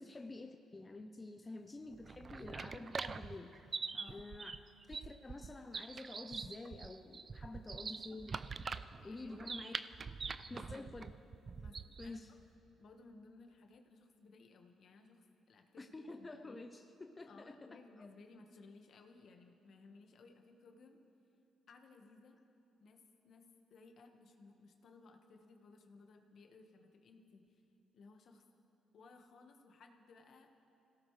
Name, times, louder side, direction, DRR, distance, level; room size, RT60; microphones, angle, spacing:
voice 1, 0.0-3.6 4.1-4.5 4.9-8.4 9.0-9.7 10.5-11.1 12.0-12.3 15.8-18.1, left 2 dB, 20° left, 5 dB, 0.7 m, -49 dB
sound 1, 1.9-12.2, right 5 dB, 40° right, 0.5 m, -44 dB
voice 2, 3.9-4.3 9.0-9.5 10.5-10.9 11.6-12.2 12.8-16.7 17.3-21.0 21.7-22.4 22.8-23.4 23.7-27.6 27.9-28.4 28.9-30.5, left 3 dB, 60° left, 3 dB, 1.5 m, -60 dB
25.5 x 17.0 x 3.3 m, 2.8 s
cardioid pair, 90°, 0 cm